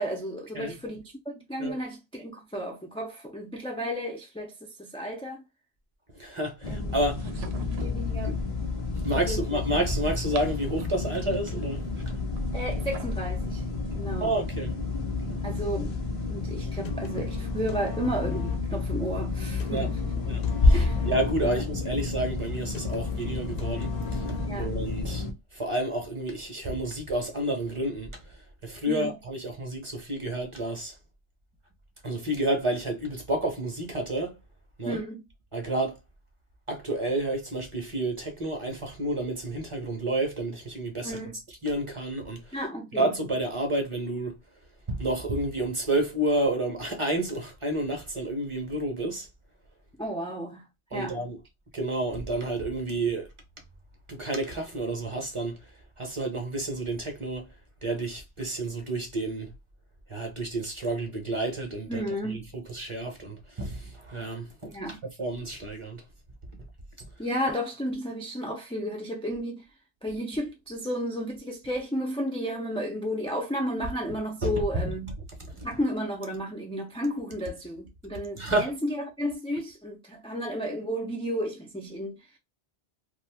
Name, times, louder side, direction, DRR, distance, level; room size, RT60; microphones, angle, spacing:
voice 1, 0.0-5.4 6.7-6.9 7.6-8.4 9.3-9.6 12.5-13.6 13.9-14.3 15.4-15.9 16.3-20.2 20.7-21.0 21.5-21.6 24.5-24.7 28.9-29.1 34.8-35.2 41.0-41.4 42.5-43.1 50.0-50.6 50.9-51.2 61.9-62.5 64.6-65.0 67.2-69.6 70.0-75.2 75.6-82.2, equal, 10° left, 0.3 m, -33 dB
voice 2, 6.1-7.2 7.8-7.9 8.2-8.3 9.0-11.8 14.2-14.7 15.3-15.4 19.7-19.9 20.3-28.1 28.6-30.9 32.0-34.4 34.8-35.0 35.5-36.0 36.7-41.2 41.6-42.5 42.9-44.4 44.9-49.3 50.9-51.4 51.7-53.3 54.1-55.6 56.0-57.5 57.8-59.5 60.1-64.8 65.2-66.0 67.0-67.1 74.4-74.9 75.6-75.7 78.4-78.7, right 1 dB, 30° right, 0.8 m, -30 dB
sound 1, 6.6-25.3, left 3 dB, 35° left, 0.7 m, -30 dB
sound 2, 7.0-8.0 9.9-11.1 12.3-13.2, right 5 dB, 75° right, 0.8 m, -46 dB
sound 3, 16.8-24.9, left 5 dB, 70° left, 0.9 m, -41 dB
2.6 x 2.3 x 3.3 m
omnidirectional pair, 1.1 m